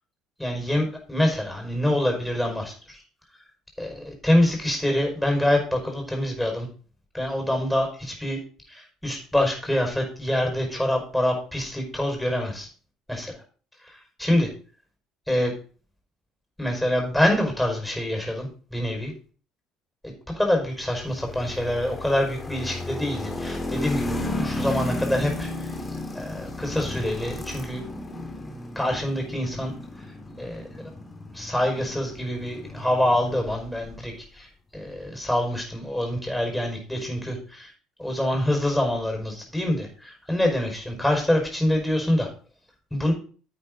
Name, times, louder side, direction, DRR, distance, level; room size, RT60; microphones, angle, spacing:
voice 1, 0.4-3.0 3.8-6.7 7.1-8.4 8.7-12.7 13.1-13.3 13.9-14.5 15.3-15.5 16.6-19.1 20.4-25.7 26.1-27.8 28.8-29.7 30.4-30.7 31.3-34.5 34.7-37.7 38.0-42.3 42.9-43.1, left 1 dB, 5° left, 2 dB, 5.5 m, -25 dB
sound 1, 20.9-34.0, left 2 dB, 25° left, 2.4 m, -34 dB
11.0 x 8.3 x 4.0 m, 0.40 s
hypercardioid pair, 55°, 0 cm